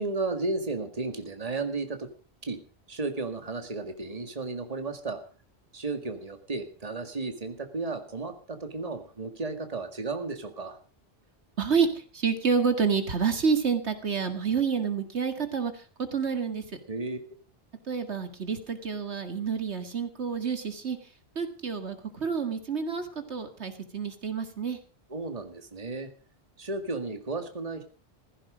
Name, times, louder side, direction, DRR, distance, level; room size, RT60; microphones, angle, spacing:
voice 1, 0.0-2.1 2.4-2.6 2.9-5.2 5.7-10.8 16.9-17.2 25.1-26.1 26.6-27.8, right 3 dB, 35° right, 7 dB, 2.1 m, -33 dB
voice 2, 11.6-15.9 16.1-16.8 17.8-21.1 21.4-24.8, right 6 dB, 80° right, 8 dB, 2.2 m, -29 dB
15.5 x 15.5 x 5.0 m, 0.38 s
omnidirectional pair, 1.1 m